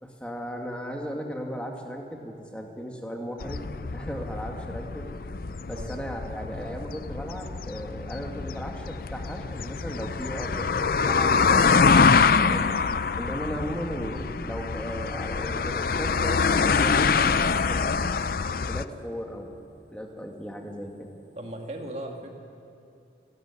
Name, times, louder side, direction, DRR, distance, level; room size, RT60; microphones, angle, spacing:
voice 1, 0.0-3.7 3.9-5.1 5.7-12.7 13.2-18.2 18.5-19.6 19.9-21.1, equal, 5° left, 1 dB, 2.2 m, -36 dB
sound 1, 3.4-18.8, left 5 dB, 50° left, 0.5 m, -25 dB
voice 2, 21.4-22.4, right 1 dB, 35° right, 2 dB, 2.3 m, -38 dB
27.5 x 13.5 x 9.9 m, 2.5 s
head